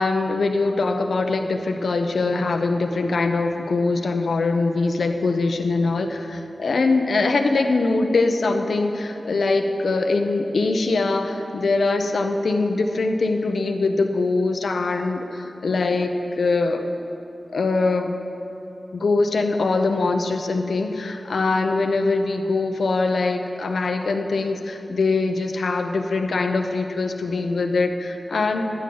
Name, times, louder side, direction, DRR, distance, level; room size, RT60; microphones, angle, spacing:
voice 1, 0.0-16.8 17.5-18.2 18.9-28.7, left 3 dB, 85° left, 5 dB, 0.7 m, -22 dB
12.0 x 9.8 x 3.9 m, 2.9 s
wide cardioid pair, 85°, 0 cm